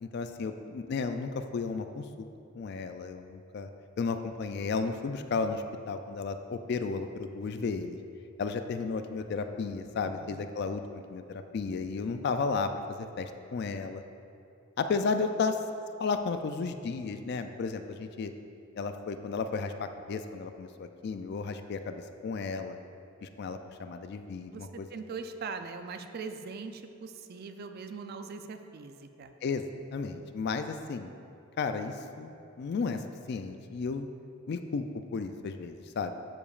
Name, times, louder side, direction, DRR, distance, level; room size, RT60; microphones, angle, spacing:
voice 1, 0.0-2.3 2.6-3.7 4.0-8.0 8.4-10.8 11.1-14.0 14.8-15.6 16.0-18.3 18.8-22.8 23.2-24.9 29.4-29.6 29.9-31.1 31.6-34.1 34.5-34.8 35.1-36.1, left 4 dB, 50° left, 8 dB, 0.3 m, -33 dB
voice 2, 10.0-10.5 15.2-15.4 24.5-29.3, right 4 dB, 45° right, 7 dB, 0.4 m, -41 dB
12.0 x 4.9 x 2.4 m, 2.5 s
head